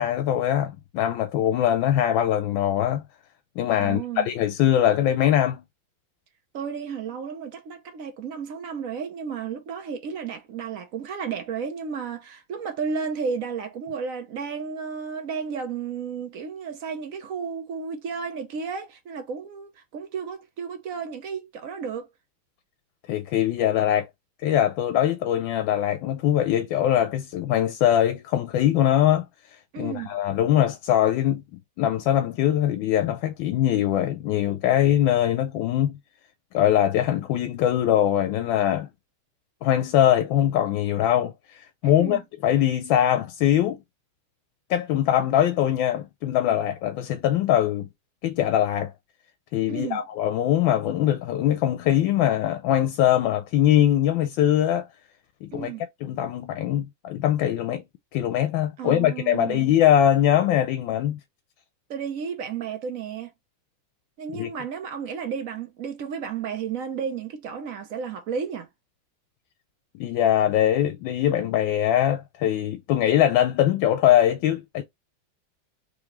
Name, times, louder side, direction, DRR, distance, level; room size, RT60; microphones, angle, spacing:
voice 1, 0.0-3.0 3.6-5.6 23.1-24.1 24.4-29.3 29.8-31.4 31.8-36.0 36.5-38.9 39.6-43.8 44.7-47.9 48.2-48.9 49.5-54.9 55.4-55.7 56.0-57.8 58.1-61.2 64.3-64.5 69.9-74.8, left 11 dB, 80° left, 1.3 m, -22 dB
voice 2, 3.8-4.3 6.5-22.1 29.7-30.1 41.8-42.2 49.7-50.0 55.5-55.8 58.8-59.6 61.9-63.3 64.2-68.7, right 6 dB, 60° right, 0.8 m, -33 dB
3.8 x 3.1 x 3.0 m
omnidirectional pair, 2.2 m